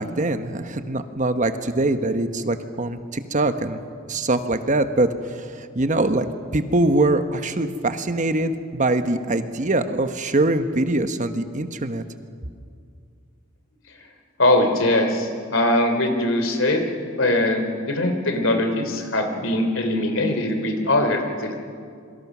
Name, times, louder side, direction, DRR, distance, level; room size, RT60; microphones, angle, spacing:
voice 1, 0.0-3.8 4.1-12.0, right 2 dB, 40° right, 9 dB, 1.1 m, -23 dB
voice 2, 14.4-16.8 17.2-21.6, left 1 dB, 75° left, 5 dB, 3.1 m, -21 dB
27.0 x 24.0 x 6.1 m, 2.3 s
head